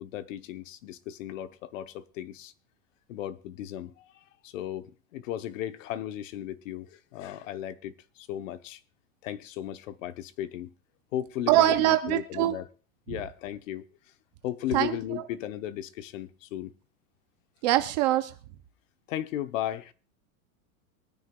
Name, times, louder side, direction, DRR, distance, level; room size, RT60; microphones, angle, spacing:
voice 1, 0.0-2.5 3.1-4.0 4.4-8.8 9.2-10.7 11.1-12.7 13.1-13.9 14.4-16.7 19.1-19.9, left 12 dB, 65° left, 0.9 m, -36 dB
voice 2, 11.5-12.6 14.7-15.2 17.6-18.3, right 15 dB, 30° right, 0.5 m, -23 dB
24.0 x 9.6 x 2.3 m
supercardioid pair, 165°, 42 cm